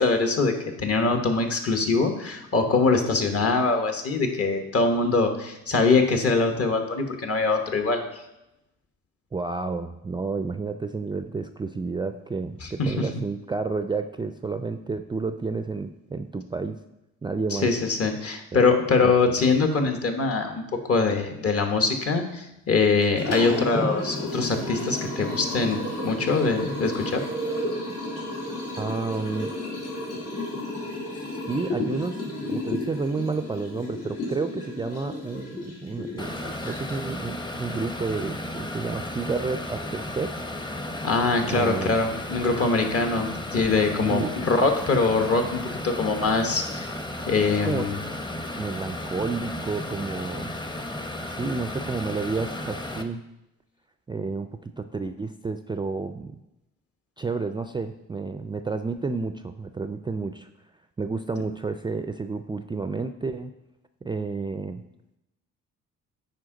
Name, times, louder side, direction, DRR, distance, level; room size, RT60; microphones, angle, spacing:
voice 1, 0.0-8.2 12.6-13.1 17.5-27.2 41.0-46.9 47.3-48.0, left 4 dB, 50° left, 5 dB, 1.2 m, -23 dB
voice 2, 9.3-16.8 17.2-17.7 18.5-18.6 19.0-19.1 28.8-29.5 31.5-32.2 32.5-40.3 41.5-42.0 44.0-44.3 47.6-47.9 48.6-50.5 51.3-53.2 54.1-56.4 57.2-60.5 61.0-63.5 64.0-64.8, right 4 dB, 15° right, 9 dB, 0.3 m, -30 dB
Liquid, 23.0-37.1, left 1 dB, 85° left, 2.6 m, -32 dB
sound 1, 36.2-53.0, left 1 dB, 15° left, 0.7 m, -34 dB
9.6 x 4.6 x 3.8 m, 0.89 s
cardioid pair, 90°, 30 cm